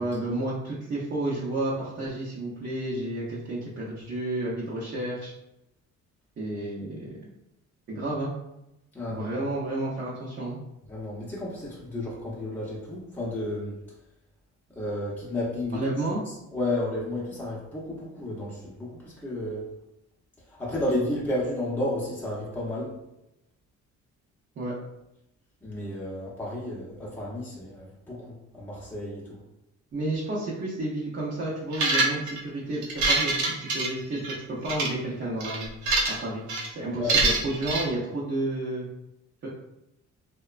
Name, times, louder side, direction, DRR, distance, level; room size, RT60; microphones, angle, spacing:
voice 1, 0.0-5.3 6.4-7.3 7.9-8.3 9.1-10.6 15.7-16.2 24.6-24.7 29.9-35.7 36.1-38.9 39.4-39.5, right 2 dB, 40° right, -6 dB, 0.7 m, -31 dB
voice 2, 8.9-9.3 10.9-13.8 14.8-15.8 16.5-19.6 20.5-23.0 25.6-29.4 37.0-37.2, left 1 dB, 5° left, -6 dB, 0.7 m, -32 dB
sound 1, 31.7-32.4 32.8-34.3 34.7-34.9 35.4-36.2 36.5-36.7 37.1-37.8, right 3 dB, 75° right, 0.6 m, -25 dB
2.8 x 2.2 x 2.4 m, 0.87 s
cardioid pair, 90°, 30 cm